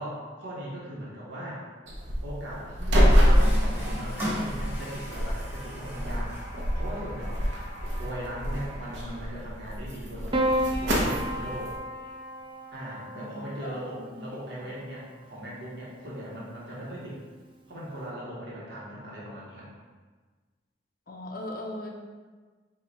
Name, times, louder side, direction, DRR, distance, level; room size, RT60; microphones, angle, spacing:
voice 1, 0.0-1.7 2.2-6.4 6.7-7.5 8.0-11.7 12.7-17.2 17.7-19.7, equal, 65° right, -6 dB, 1.1 m, -39 dB
sound 1, 1.9-11.8, equal, 85° right, 0.8 m, -26 dB
Water tap faucet, 3.1-9.4, equal, 10° right, 1.0 m, -39 dB
Piano, 10.3-14.8 16.0-16.7, equal, 25° right, 0.4 m, -32 dB
voice 2, 13.1-14.2 14.6-14.7 21.1-21.9, left 1 dB, 50° left, -1 dB, 0.7 m, -39 dB
4.9 x 2.4 x 4.1 m, 1.4 s
head